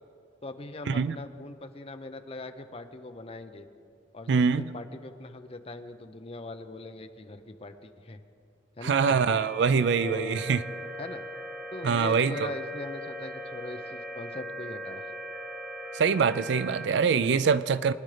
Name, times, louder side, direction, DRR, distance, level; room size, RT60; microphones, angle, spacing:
voice 1, 0.4-3.7 4.1-8.2 8.8-9.2 10.0-10.4 11.0-11.2 11.7-15.1 16.9-17.0, left 2 dB, 30° left, 8 dB, 0.6 m, -41 dB
voice 2, 4.3-4.7 8.8-10.6 11.8-12.5 15.9-17.9, right 5 dB, 65° right, 14 dB, 0.4 m, -24 dB
sound 1, 9.0-16.9, equal, 5° right, 0.8 m, -40 dB
23.0 x 10.5 x 3.3 m, 2.5 s
head